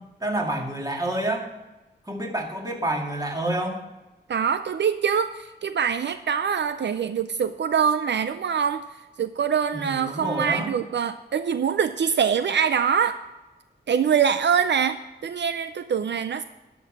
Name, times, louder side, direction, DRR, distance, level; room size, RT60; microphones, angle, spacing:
voice 1, 0.2-1.5 2.1-3.8 9.7-10.7, right 1 dB, 20° right, 1 dB, 2.0 m, -28 dB
voice 2, 4.3-8.8 9.2-13.2 13.9-16.4, right 7 dB, 75° right, 11 dB, 0.4 m, -24 dB
11.5 x 5.9 x 6.0 m, 1.1 s
wide cardioid pair, 95°, 18 cm